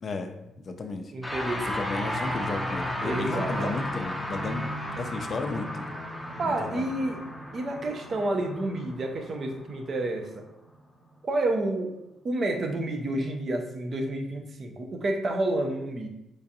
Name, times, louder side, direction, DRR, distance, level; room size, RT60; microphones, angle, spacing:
voice 1, 0.0-1.1 1.5-5.8 6.4-6.9, left 3 dB, 45° left, 6 dB, 0.4 m, -34 dB
voice 2, 1.1-1.7 3.0-3.8 6.4-7.2 7.5-10.4 11.2-11.9 12.2-16.1, right 1 dB, 45° right, 4 dB, 0.6 m, -29 dB
sound 1, 1.2-10.7, equal, 5° right, 0.6 m, -34 dB
4.6 x 2.4 x 2.7 m, 0.86 s
cardioid pair, 90°, 0 cm